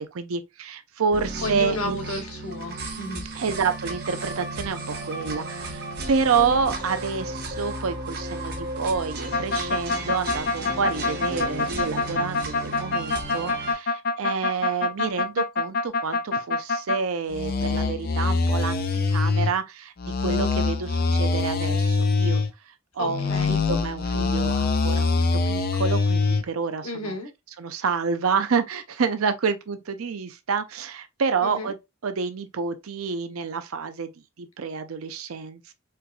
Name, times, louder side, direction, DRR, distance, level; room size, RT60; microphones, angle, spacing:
voice 1, 0.0-2.0 3.3-22.4 22.9-27.2 27.6-31.8 32.0-34.1 34.4-35.7, right 5 dB, 80° right, 0.5 m, -28 dB
sound 1, 1.1-13.7, right 2 dB, 45° right, 1.0 m, -34 dB
voice 2, 1.4-3.2 23.0-23.6 26.8-27.3 31.4-31.7, left 2 dB, 85° left, 1.2 m, -32 dB
sound 2, 9.3-17.0 17.3-19.5 20.0-22.5 23.0-26.4, left 3 dB, 45° left, 0.4 m, -24 dB
4.4 x 2.3 x 2.4 m
head